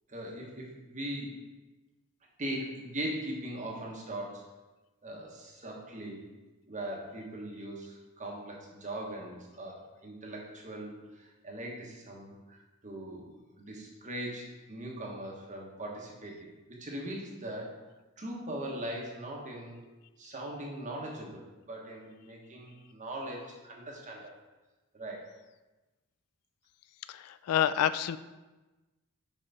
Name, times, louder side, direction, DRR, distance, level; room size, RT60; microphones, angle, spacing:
voice 1, 0.1-1.3 2.4-4.4 5.0-6.3 6.7-13.3 13.6-17.8 18.2-19.8 20.2-24.3 24.9-25.2, right 1 dB, 35° right, -1 dB, 1.2 m, -40 dB
voice 2, 27.1-28.2, left 10 dB, 75° left, 16 dB, 0.3 m, -28 dB
5.5 x 4.8 x 4.1 m, 1.1 s
head